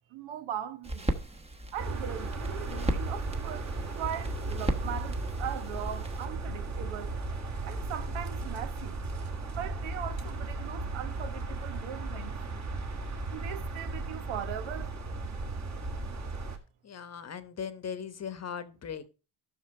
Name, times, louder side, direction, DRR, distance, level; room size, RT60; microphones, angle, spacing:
voice 1, 0.1-1.1 1.7-7.1 7.6-9.0 9.5-12.4 13.3-14.9, right 10 dB, 70° right, 1.3 m, -39 dB
sound 1, 0.8-6.2, right 1 dB, 10° right, 1.1 m, -36 dB
sound 2, 1.8-16.6, right 2 dB, 35° right, 2.0 m, -36 dB
voice 2, 16.8-19.0, left 7 dB, 30° left, 1.1 m, -39 dB
13.5 x 6.2 x 4.3 m
cardioid pair, 120°, 50 cm